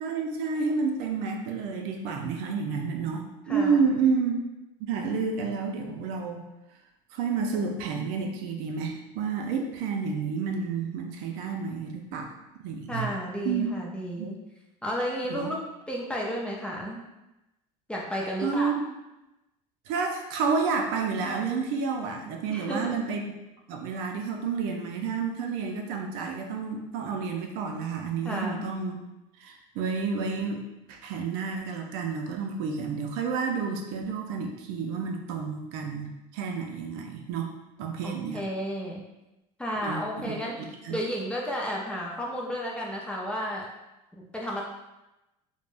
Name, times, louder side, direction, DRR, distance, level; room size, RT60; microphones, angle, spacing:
voice 1, 0.0-4.4 4.8-6.4 7.1-12.3 12.6-13.1 13.4-13.7 14.2-14.3 15.3-15.5 18.4-18.8 19.9-23.4 23.7-29.0 29.4-30.6 30.9-37.5 37.8-38.4 39.8-41.0, right 5 dB, 75° right, 2 dB, 0.5 m, -30 dB
voice 2, 3.5-3.8 12.9-14.4 14.8-15.6 15.9-17.0 17.9-18.7 22.5-23.0 28.2-28.7 38.0-39.0 39.6-40.6 40.9-43.7 44.1-44.6, equal, 5° left, -3 dB, 0.4 m, -32 dB
3.3 x 2.1 x 2.5 m, 0.97 s
cardioid pair, 130°, 17 cm